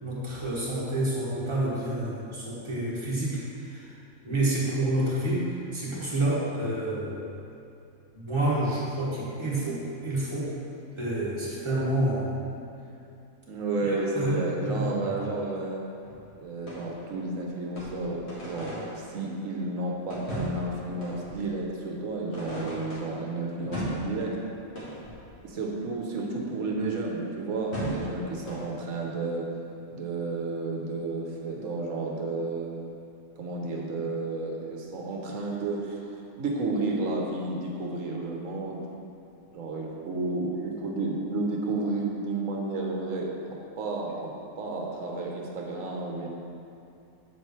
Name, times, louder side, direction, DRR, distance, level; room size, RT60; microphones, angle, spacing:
voice 1, 0.0-3.9 4.2-7.2 8.1-10.5 11.0-12.4 13.8-14.4 14.6-14.8, right 1 dB, 20° right, -8 dB, 1.8 m, -29 dB
voice 2, 13.5-15.8 16.4-24.4 25.4-29.5 29.9-32.7 33.4-38.8 39.5-46.3, right 2 dB, 65° right, -1 dB, 1.4 m, -32 dB
sound 1, 16.0-17.2 17.7-19.2 20.1-21.7 22.3-23.3 23.7-25.4 27.7-28.9, right 1 dB, 50° left, 2.1 m, -37 dB
8.0 x 7.7 x 3.4 m, 2.6 s
omnidirectional pair, 1.5 m